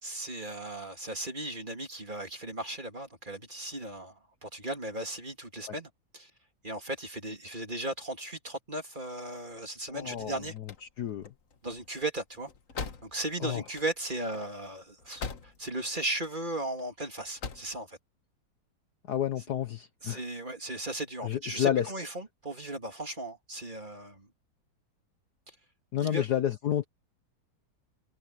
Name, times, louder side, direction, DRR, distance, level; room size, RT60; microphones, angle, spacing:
voice 1, 0.0-6.3 6.6-10.5 11.6-12.5 13.0-18.0 20.0-24.3 26.0-26.2, right 1 dB, 25° right, 2.9 m, -36 dB
voice 2, 9.9-10.4 11.0-11.3 13.4-13.6 19.1-20.2 21.2-21.9 25.9-26.8, left 10 dB, 60° left, 1.3 m, -30 dB
sound 1, 10.5-15.8 16.1-16.8 17.2-17.8, left 5 dB, 45° left, 1.6 m, -42 dB
omnidirectional pair, 2.2 m